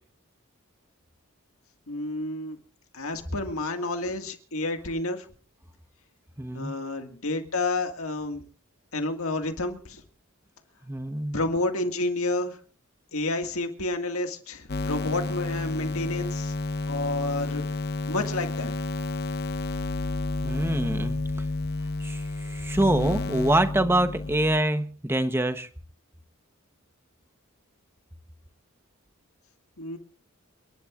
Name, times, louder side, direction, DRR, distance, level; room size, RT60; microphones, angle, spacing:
voice 1, 1.9-2.6 2.9-5.2 6.5-8.4 8.9-10.0 11.3-12.6 13.1-16.5 16.8-17.6 18.1-18.7 29.8-30.0, left 2 dB, 90° left, 5 dB, 2.0 m, -30 dB
voice 2, 6.4-6.7 10.8-11.4 20.4-21.1 22.0-25.7, right 1 dB, 10° right, 9 dB, 0.9 m, -25 dB
sound 1, 14.7-24.6, left 2 dB, 50° left, 0.8 m, -30 dB
29.5 x 11.0 x 2.5 m, 0.43 s
head